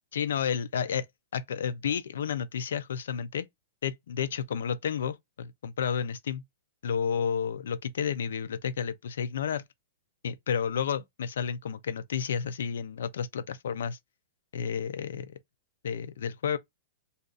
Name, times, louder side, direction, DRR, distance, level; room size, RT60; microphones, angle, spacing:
voice 1, 0.1-1.1 1.3-3.5 3.8-6.4 6.8-9.6 10.2-14.0 14.5-15.3 15.8-16.6, left 7 dB, 80° left, 0.5 m, -31 dB
2.6 x 2.4 x 3.8 m
supercardioid pair, 175°, 0 cm